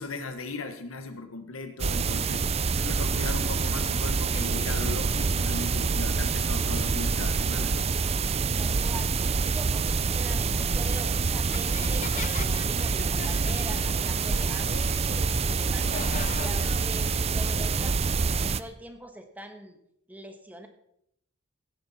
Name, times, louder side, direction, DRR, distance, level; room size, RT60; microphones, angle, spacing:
voice 1, 0.0-7.9, left 3 dB, 75° left, 8 dB, 1.5 m, -37 dB
sound 1, 1.8-18.6, right 4 dB, 30° right, 0.5 m, -26 dB
voice 2, 8.6-14.7 15.1-18.1 18.5-19.8 20.1-20.7, right 1 dB, 10° right, 5 dB, 1.4 m, -43 dB
sound 2, 11.5-16.9, left 7 dB, 35° left, 0.4 m, -40 dB
16.5 x 9.7 x 4.3 m, 0.75 s
head